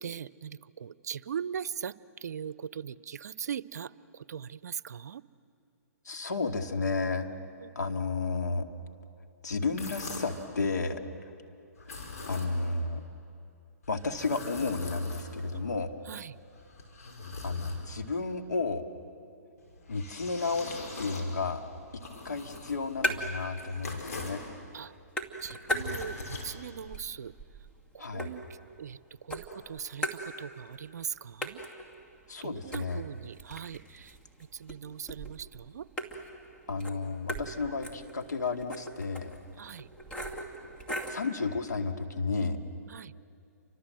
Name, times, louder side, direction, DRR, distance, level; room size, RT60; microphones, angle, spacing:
voice 1, 0.0-5.2 7.6-7.7 15.5-15.7 16.0-16.4 24.7-24.9 25.4-27.3 27.9-28.4 28.8-31.6 32.4-35.9 39.6-39.9 42.9-43.1, right 8 dB, 75° right, 18 dB, 0.7 m, -40 dB
voice 2, 6.1-7.3 7.8-8.7 9.4-11.0 12.3-13.0 13.9-15.9 17.4-18.8 19.9-21.6 21.9-24.4 28.0-28.3 32.3-33.0 36.7-39.3 41.1-42.6, left 4 dB, 90° left, 5 dB, 2.2 m, -32 dB
sound 1, 9.6-10.5 11.8-12.8 13.8-15.6 16.3-18.2 19.6-24.5 25.4-27.1, left 3 dB, 65° left, 5.8 m, -43 dB
sound 2, 22.5-23.5 23.8-24.5 24.8-26.4 26.8-29.0 29.3-30.7 31.0-31.1 31.4-41.3, equal, 10° left, 2.4 m, -38 dB
30.0 x 25.0 x 7.8 m, 2.6 s
hypercardioid pair, 135°, 9 cm